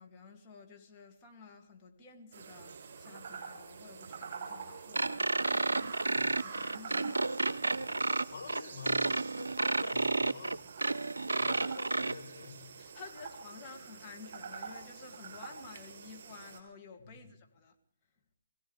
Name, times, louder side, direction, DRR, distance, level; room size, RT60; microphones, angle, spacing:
voice 1, 0.0-7.3 11.3-11.6 12.8-17.8, left 5 dB, 25° left, 2.4 m, -52 dB
sound 1, 2.3-16.6, right 5 dB, 50° right, 3.7 m, -47 dB
sound 2, 4.9-12.1, right 3 dB, 75° right, 0.6 m, -31 dB
voice 2, 7.5-12.7 17.1-17.2, left 5 dB, 60° left, 7.1 m, -49 dB
22.0 x 16.5 x 3.4 m
figure-of-eight pair, 140°, 0 cm